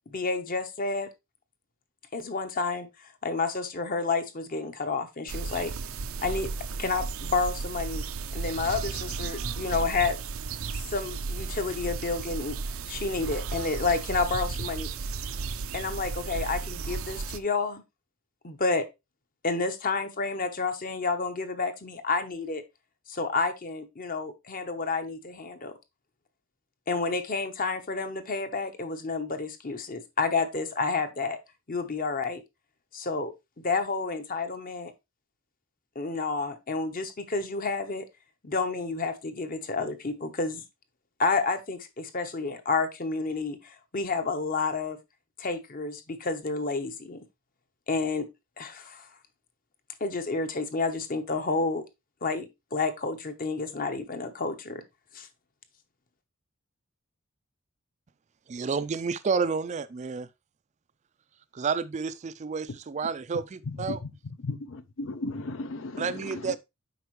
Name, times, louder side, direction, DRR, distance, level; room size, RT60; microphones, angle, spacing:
voice 1, 0.1-1.1 2.1-5.7 6.2-6.5 6.8-8.0 8.3-10.2 10.9-12.6 12.9-14.9 15.7-17.8 18.4-18.9 19.4-22.6 23.1-25.7 26.9-31.4 31.7-32.4 32.9-34.9 35.9-38.1 38.4-40.6 41.2-45.0 45.4-47.2 47.9-48.3 48.6-49.1 50.0-51.8 52.2-54.8 55.1-55.3, left 4 dB, 40° left, 0.9 m, -30 dB
sound 1, 5.3-17.4, right 4 dB, 80° right, 0.6 m, -34 dB
voice 2, 58.5-60.3 61.5-64.0 66.0-66.6, right 5 dB, 35° right, 0.4 m, -30 dB
voice 3, 64.4-66.6, left 2 dB, 65° left, 0.5 m, -35 dB
8.0 x 5.2 x 3.1 m
head